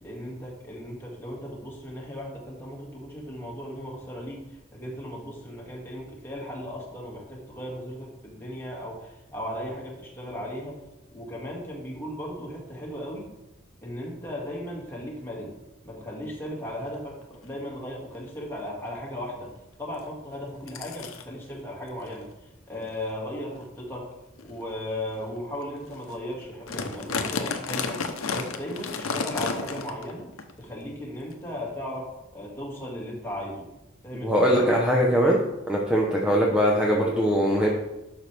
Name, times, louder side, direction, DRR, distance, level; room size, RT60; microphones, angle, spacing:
voice 1, 0.0-10.8 11.1-13.3 13.8-15.5 15.8-19.5 19.8-24.1 24.4-28.0 28.3-30.3 30.6-33.7 34.0-34.3, left 1 dB, 10° left, -4 dB, 2.1 m, -36 dB
sound 1, 16.8-16.9 17.3-17.6 18.1-18.2 18.6-18.9 20.0-20.1 20.7-21.2 22.0-22.1 22.7-22.9 23.6-23.7 24.4-24.5 25.1-25.2 25.6-25.7 25.9-26.1 26.4-30.1 30.4-30.5 31.3-31.4, left 4 dB, 85° left, 0.8 m, -32 dB
voice 2, 34.2-35.4 35.7-37.7, equal, 5° right, -2 dB, 0.9 m, -21 dB
11.0 x 6.0 x 3.4 m, 0.96 s
head